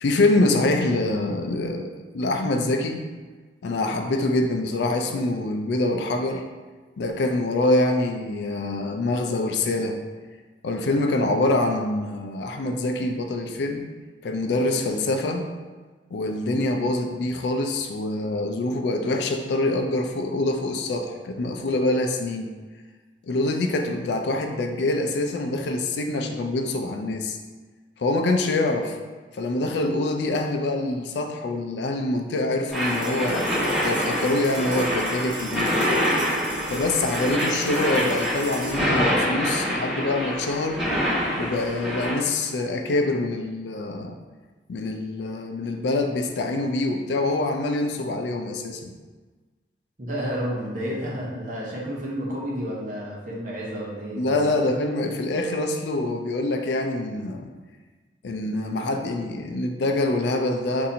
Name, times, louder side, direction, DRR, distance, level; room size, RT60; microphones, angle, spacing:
voice 1, 0.0-3.0 3.6-6.4 7.0-10.0 10.6-13.9 14.2-15.5 16.1-22.5 23.2-27.4 28.0-29.0 29.3-33.5 33.8-35.7 36.7-40.8 41.4-44.2 44.7-48.9 54.2-57.5 58.2-60.9, left 2 dB, 75° left, 4 dB, 0.4 m, -25 dB
sound 1, 32.7-42.1, equal, ahead, 1.2 m, -26 dB
sound 2, 32.7-43.3, right 2 dB, 75° right, 0.6 m, -39 dB
voice 2, 50.0-54.4, equal, 45° right, -4 dB, 0.8 m, -31 dB
4.1 x 2.6 x 2.6 m, 1.3 s
head